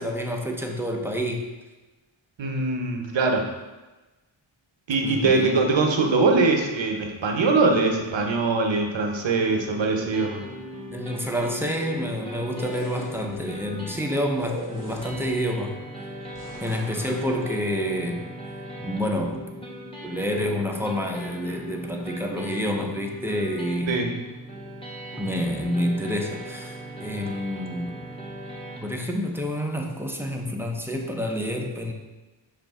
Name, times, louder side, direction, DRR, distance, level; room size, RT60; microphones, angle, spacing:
voice 1, 0.0-1.5 5.0-5.5 10.9-15.8 16.6-18.2 18.8-19.7 20.0-24.1 25.2-27.9 28.8-31.9, equal, 5° right, 1 dB, 0.5 m, -28 dB
voice 2, 2.4-3.4 4.9-10.4 23.9-24.1, right 3 dB, 65° right, 2 dB, 0.7 m, -22 dB
sound 1, 9.3-28.8, right 1 dB, 10° left, 0.8 m, -39 dB
sound 2, 12.4-13.4 14.4-15.4 16.3-17.3, left 1 dB, 40° left, 1.1 m, -39 dB
6.2 x 2.5 x 3.5 m, 1.2 s
wide cardioid pair, 75°, 49 cm